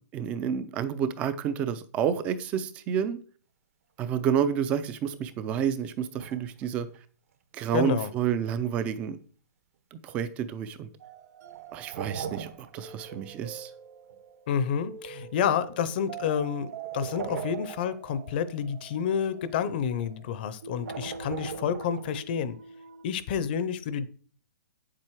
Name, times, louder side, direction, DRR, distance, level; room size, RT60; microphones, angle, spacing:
voice 1, 0.1-3.2 4.0-6.9 7.5-9.2 9.9-10.9 11.7-13.7, right 8 dB, 15° right, 0.4 m, -29 dB
sound 1, 4.7-4.8 6.2-7.0 7.7-7.8 11.5-13.2 13.5-13.6 14.1-14.2 16.7-18.2 19.8-20.1 20.8-22.4, right 7 dB, 50° right, 1.0 m, -39 dB
voice 2, 7.7-8.1 14.5-16.7 16.9-22.6 23.0-24.1, left 8 dB, 35° left, 0.7 m, -29 dB
sound 2, 11.0-23.0, right 7 dB, 70° right, 2.6 m, -45 dB
8.6 x 7.6 x 4.7 m
hypercardioid pair, 175°, 9 cm